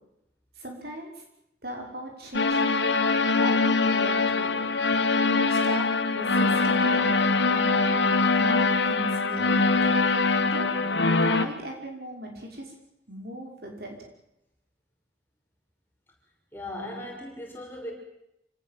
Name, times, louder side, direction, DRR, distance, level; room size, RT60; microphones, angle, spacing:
voice 1, 0.6-1.2 1.6-4.6 5.3-5.9 6.1-7.2 7.5-7.8 8.3-10.1 10.5-10.8 11.2-12.7 13.1-14.1, right 1 dB, 60° right, 1 dB, 5.7 m, -38 dB
sound 1, 2.3-11.5, left 3 dB, 85° left, 1.7 m, -23 dB
voice 2, 16.5-17.9, left 1 dB, 10° left, 0 dB, 5.7 m, -37 dB
27.0 x 18.5 x 7.6 m, 0.80 s
head